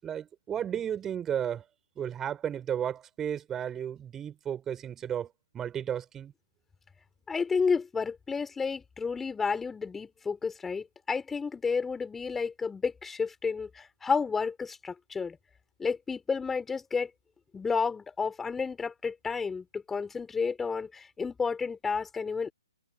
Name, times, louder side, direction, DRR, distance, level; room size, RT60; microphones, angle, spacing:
voice 1, 0.0-1.6 2.0-6.3, right 9 dB, 10° right, 8.0 m, -33 dB
voice 2, 7.3-15.4 15.8-17.1 17.5-22.5, left 5 dB, 5° left, 5.8 m, -31 dB
figure-of-eight pair, 140°, 3 cm